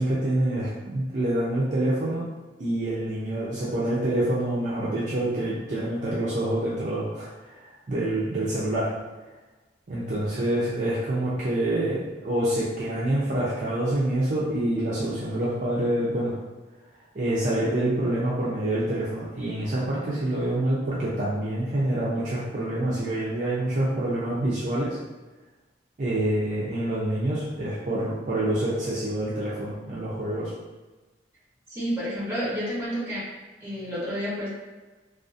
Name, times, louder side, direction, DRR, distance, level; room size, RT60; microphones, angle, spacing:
voice 1, 0.0-2.2 2.6-8.9 9.9-16.3 17.1-25.0 26.0-30.5, right 1 dB, 45° right, -7 dB, 0.4 m, -26 dB
voice 2, 31.7-33.2 33.6-34.5, equal, 15° right, -8 dB, 0.9 m, -30 dB
2.5 x 2.4 x 2.5 m, 1.2 s
head